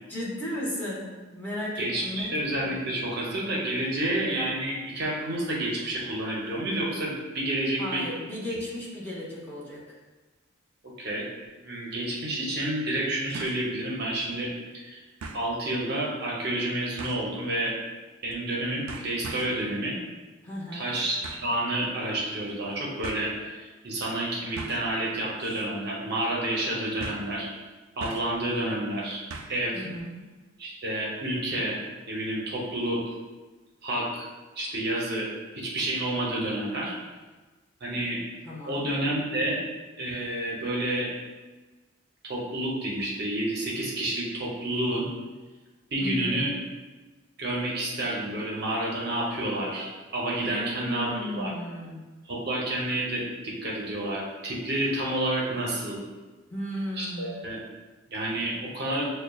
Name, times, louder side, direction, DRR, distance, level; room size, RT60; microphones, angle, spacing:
voice 1, 0.1-2.4 7.8-9.8 20.4-21.0 29.7-30.2 38.4-38.9 46.0-46.5 50.4-52.1 56.5-57.4, equal, 10° left, -8 dB, 0.9 m, -35 dB
voice 2, 1.8-8.1 10.8-11.3 11.6-14.5 14.8-15.0 15.3-17.8 18.2-20.0 20.7-27.5 28.0-29.2 29.5-29.8 30.6-31.8 32.1-33.1 33.8-34.3 34.6-37.0 37.8-38.2 38.7-39.6 40.0-41.1 42.2-45.1 45.9-46.5 47.4-51.5 52.2-56.0 57.0-57.6 58.1-59.1, right 1 dB, 50° right, -4 dB, 0.7 m, -29 dB
sound 1, 11.4-11.5 13.3-13.7 14.1-14.2 15.2-15.5 17.0-17.3 18.3-18.5 18.9-19.6 21.2-21.5 22.5-22.6 23.0-23.2 24.6-24.9 25.4-25.7 25.9-26.0 27.0-27.3 28.0-28.4 29.3-29.7 30.0-30.1, right 3 dB, 85° right, 0.4 m, -40 dB
6.3 x 2.2 x 2.3 m, 1.3 s
head